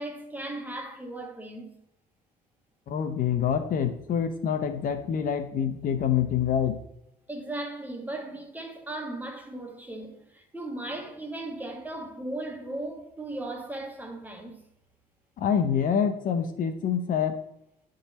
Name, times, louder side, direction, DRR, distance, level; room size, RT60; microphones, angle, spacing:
voice 1, 0.0-1.8 7.3-14.6, right 2 dB, 10° right, 1.4 m, -37 dB
voice 2, 2.9-6.8 15.4-17.4, left 8 dB, 55° left, 0.7 m, -26 dB
9.9 x 3.9 x 4.1 m
cardioid pair, 110°, 17 cm